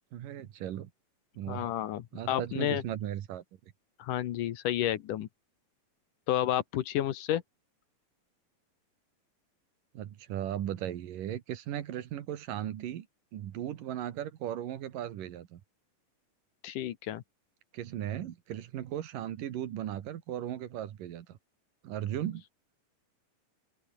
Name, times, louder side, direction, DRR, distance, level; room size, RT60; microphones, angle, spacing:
voice 1, 0.1-0.9 1.4-1.7 2.1-3.4 9.9-13.1 13.3-15.6 17.7-21.4 21.8-22.4, right 11 dB, 75° right, 3.1 m, -37 dB
voice 2, 1.5-2.8 4.0-5.3 6.3-7.4 16.6-17.2, left 12 dB, 70° left, 2.7 m, -31 dB
open air
omnidirectional pair, 4.0 m